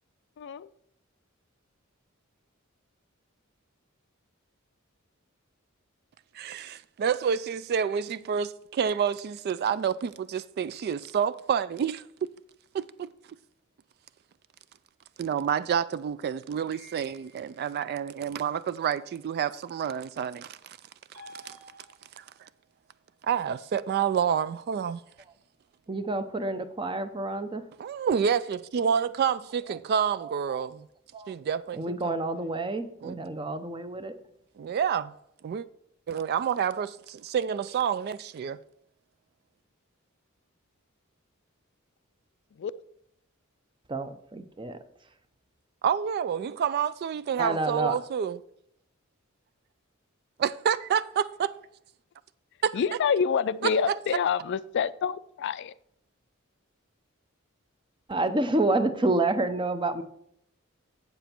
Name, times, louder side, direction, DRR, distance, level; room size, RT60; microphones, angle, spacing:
voice 1, 0.4-0.7 42.6-42.7 52.7-55.7, left 6 dB, 55° left, 0.3 m, -27 dB
voice 2, 6.3-12.0 12.7-13.1 15.2-20.8 21.4-21.6 22.2-22.5 23.2-25.0 27.8-30.9 31.3-32.2 33.0-33.2 34.6-35.1 35.4-35.7 36.1-38.6 45.8-48.4 50.4-51.5 52.6-52.8 53.6-54.0, right 7 dB, 50° right, 0.3 m, -28 dB
sound 1, 16.7-17.6 21.1-22.4, equal, 90° right, 3.2 m, -51 dB
voice 3, 25.9-27.6 30.2-30.6 31.1-31.3 31.7-34.1 43.9-44.8 47.4-48.0 58.1-60.0, right 2 dB, 25° right, 0.7 m, -29 dB
7.9 x 7.2 x 4.4 m
head